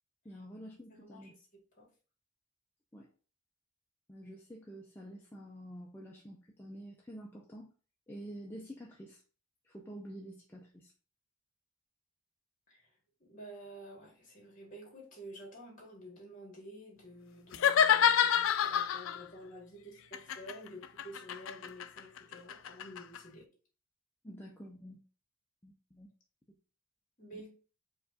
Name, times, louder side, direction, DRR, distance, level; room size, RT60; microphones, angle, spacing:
voice 1, 0.2-1.3 2.9-3.1 4.1-7.7 8.1-9.2 9.6-10.9 24.2-25.0 25.6-26.1 27.3-27.4, equal, 10° left, -2 dB, 0.4 m, -48 dB
voice 2, 0.9-1.3 1.8-1.9 12.7-12.9 13.2-23.5 27.2-27.5, equal, 40° left, -1 dB, 1.8 m, -50 dB
sound 1, 17.5-19.2 20.1-23.2, left 9 dB, 75° left, 0.3 m, -28 dB
4.6 x 2.5 x 3.9 m, 0.38 s
head